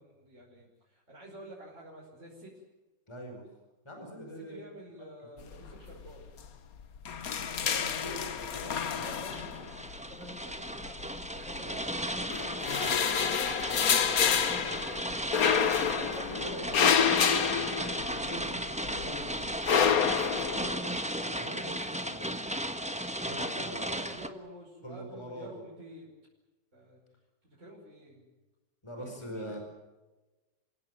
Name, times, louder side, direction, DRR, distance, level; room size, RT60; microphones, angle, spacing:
voice 1, 0.0-2.6 4.5-6.2 8.0-8.5 9.0-16.6 18.7-19.0 23.4-26.1 26.7-27.0 27.6-28.2 29.0-29.6, right 1 dB, 35° right, -4 dB, 5.8 m, -50 dB
voice 2, 3.1-3.5 3.8-4.6 5.0-5.1 5.3-5.8 7.6-9.0 15.8-16.1 16.4-17.7 18.1-22.3 23.2-24.2 24.8-25.6 28.8-29.6, equal, 15° left, 3 dB, 5.1 m, -44 dB
sound 1, 5.5-6.0 6.3-6.5 6.8-9.9 10.8-11.8 12.2-18.5 18.8-20.8, left 7 dB, 50° left, 1.5 m, -28 dB
sound 2, 9.0-24.3, right 1 dB, 5° right, 1.1 m, -35 dB
28.5 x 17.0 x 9.3 m, 1.1 s
omnidirectional pair, 2.1 m